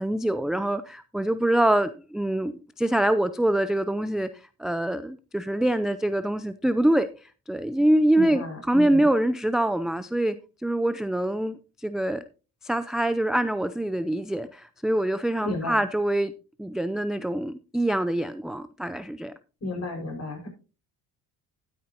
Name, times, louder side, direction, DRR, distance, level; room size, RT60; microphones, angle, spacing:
voice 1, 0.0-10.4 10.6-12.2 12.6-19.3, right 1 dB, ahead, 0.4 m, -25 dB
voice 2, 8.1-9.1 15.4-15.8 19.6-20.5, left 2 dB, 40° left, 5.3 m, -33 dB
12.5 x 9.4 x 2.8 m
supercardioid pair, 80°, 38 cm